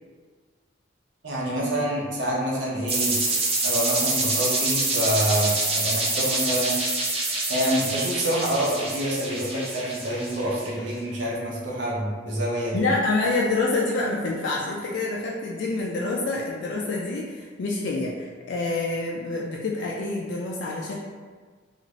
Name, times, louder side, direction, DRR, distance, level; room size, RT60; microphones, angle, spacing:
voice 1, 1.2-3.2 3.6-6.8 7.5-12.9, right 1 dB, 80° right, -5 dB, 0.7 m, -27 dB
sound 1, 2.9-10.7, right 2 dB, 35° right, 0.5 m, -26 dB
voice 2, 12.7-21.0, left 3 dB, 70° left, -3 dB, 0.3 m, -27 dB
2.5 x 2.4 x 3.0 m, 1.5 s
head